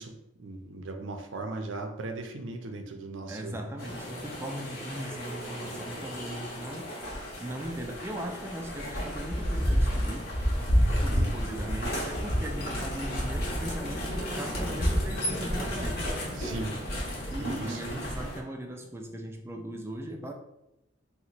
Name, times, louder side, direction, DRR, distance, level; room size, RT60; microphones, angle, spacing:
voice 1, 0.0-3.6 11.1-11.3 16.4-16.7 17.4-18.0, right 2 dB, 70° right, 4 dB, 0.5 m, -38 dB
voice 2, 3.3-6.9 7.4-16.1 17.3-20.3, right 1 dB, 10° right, 2 dB, 0.3 m, -39 dB
sound 1, 3.8-18.4, equal, 45° left, 0.8 m, -31 dB
2.9 x 2.1 x 4.0 m, 0.89 s
head